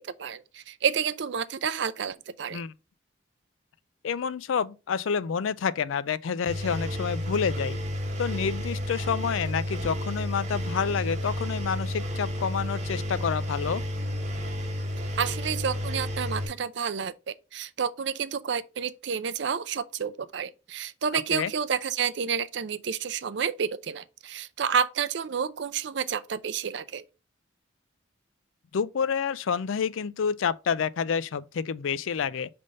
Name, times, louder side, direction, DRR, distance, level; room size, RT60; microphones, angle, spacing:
voice 1, 0.0-2.6 15.2-27.0, right 7 dB, 60° right, 0.5 m, -30 dB
voice 2, 4.0-7.8 8.2-13.8 21.3-21.5 28.7-32.5, left 6 dB, 80° left, 0.4 m, -28 dB
Engine, 6.5-16.5, left 1 dB, 35° right, 1.1 m, -31 dB
5.4 x 3.5 x 5.1 m
head